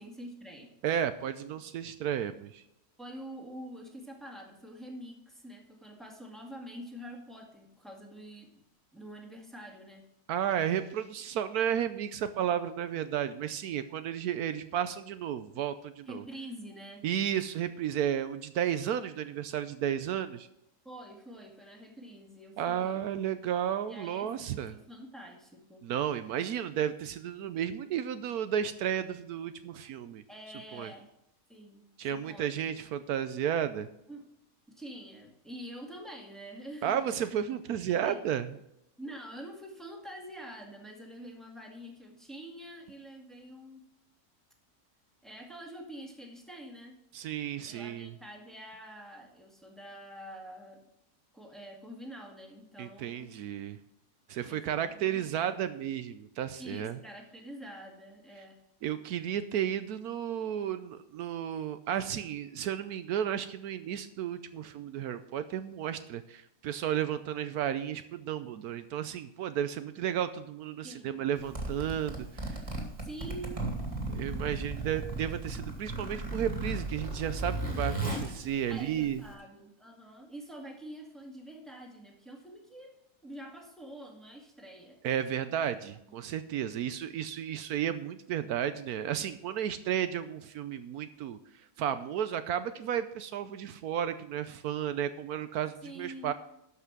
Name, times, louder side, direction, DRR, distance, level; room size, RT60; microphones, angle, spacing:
voice 1, 0.0-0.7 3.0-8.6 8.9-10.1 16.1-17.1 20.8-23.0 23.9-25.9 30.3-31.1 31.5-32.6 34.1-34.2 34.7-37.0 37.9-38.2 39.0-43.8 45.2-47.0 47.6-50.8 51.3-53.3 54.5-55.5 56.6-58.6 70.8-71.2 73.0-73.6 78.7-83.0 83.2-85.0 95.8-96.3, right 1 dB, ahead, 0 dB, 1.9 m, -46 dB
voice 2, 0.8-2.6 10.3-16.2 17.0-20.5 22.6-24.8 25.8-30.2 30.7-30.9 32.0-33.9 36.8-38.5 47.1-48.1 52.8-53.8 54.3-57.0 58.8-72.6 74.1-79.2 85.0-91.4 91.8-96.3, right 9 dB, 80° right, 11 dB, 1.1 m, -33 dB
Zipper (clothing), 71.4-79.3, right 2 dB, 20° right, 2.2 m, -36 dB
12.5 x 5.7 x 6.0 m, 0.81 s
omnidirectional pair, 1.7 m